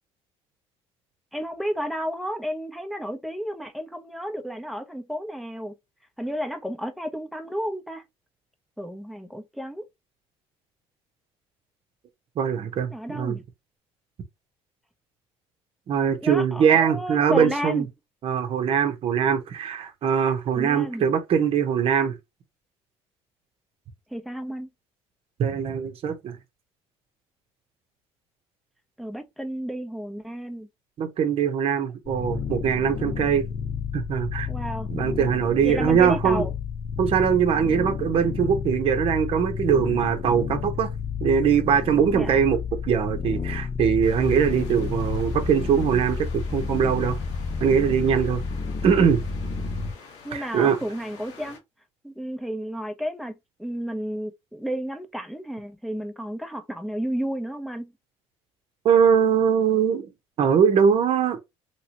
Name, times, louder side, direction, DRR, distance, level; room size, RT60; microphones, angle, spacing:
voice 1, 1.3-5.7 6.2-8.0 8.8-9.8 12.9-13.4 16.2-17.9 20.5-21.1 24.1-24.7 29.0-30.7 34.5-34.9 35.6-36.5 42.1-42.4 50.2-51.6 52.0-57.9, equal, ahead, 0.7 m, -32 dB
voice 2, 12.4-13.3 15.9-17.8 18.2-22.2 25.4-26.4 31.0-33.4 33.9-34.5 34.9-36.4 37.0-40.9 41.2-42.6 42.8-47.2 47.6-48.4 48.8-49.2 50.3-50.8 58.8-60.1 60.4-61.4, right 7 dB, 55° right, 0.8 m, -22 dB
sound 1, 32.0-49.9, left 5 dB, 40° left, 1.0 m, -31 dB
sound 2, 44.0-51.6, left 5 dB, 75° left, 1.3 m, -43 dB
3.0 x 2.9 x 2.9 m
cardioid pair, 95°, 12 cm